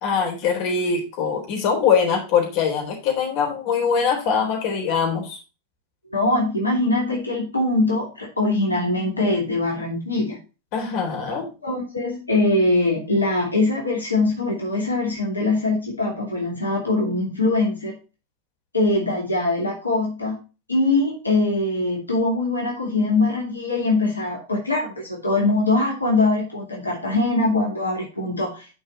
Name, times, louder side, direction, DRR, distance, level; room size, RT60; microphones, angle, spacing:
voice 1, 0.0-5.4 10.7-11.5, left 6 dB, 45° left, 2 dB, 3.7 m, -22 dB
voice 2, 6.1-10.4 11.3-17.9 18.7-20.4 20.7-28.7, left 2 dB, 80° left, -2 dB, 2.7 m, -22 dB
11.0 x 5.5 x 4.1 m, 0.31 s
figure-of-eight pair, 90°, 0 cm